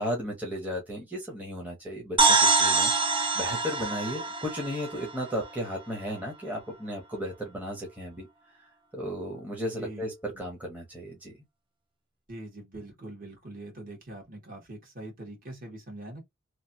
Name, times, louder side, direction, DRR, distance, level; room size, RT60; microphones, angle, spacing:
voice 1, 0.0-8.3 8.6-11.3, equal, 10° right, 1.0 m, -35 dB
sound 1, 2.2-5.8, right 4 dB, 25° right, 0.5 m, -25 dB
voice 2, 12.3-16.3, right 1 dB, 40° right, 1.6 m, -43 dB
3.1 x 2.5 x 2.7 m
head